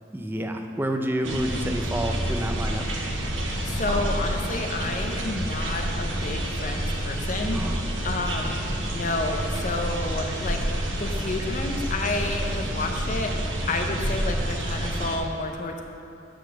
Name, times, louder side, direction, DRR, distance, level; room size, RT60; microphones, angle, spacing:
voice 1, 0.1-2.8 7.5-7.9, right 1 dB, 10° right, 4 dB, 0.4 m, -29 dB
sound 1, 1.2-15.2, right 1 dB, 80° right, 0.9 m, -28 dB
voice 2, 3.6-7.6 8.0-8.6 8.9-10.6 10.9-13.3 13.7-15.8, left 2 dB, 40° left, 4 dB, 0.6 m, -30 dB
9.2 x 4.0 x 6.4 m, 2.7 s
head